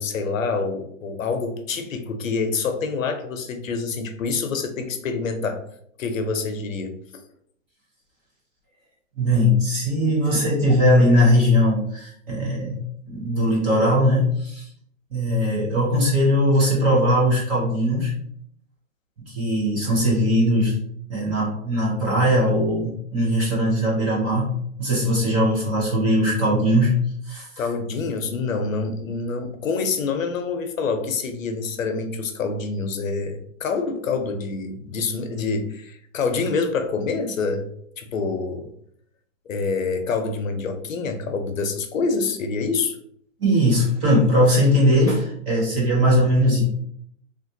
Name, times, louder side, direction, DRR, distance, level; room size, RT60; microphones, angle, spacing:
voice 1, 0.0-5.6 6.0-7.2 27.6-37.7 38.0-38.7 39.5-43.0 45.7-45.8, left 4 dB, 85° left, 7 dB, 0.8 m, -26 dB
voice 2, 9.2-14.7 15.1-18.1 19.2-20.7 21.1-27.0 27.2-27.5 43.4-46.6, equal, 15° right, -5 dB, 0.5 m, -20 dB
3.5 x 2.5 x 2.7 m, 0.67 s
hypercardioid pair, 150°, 39 cm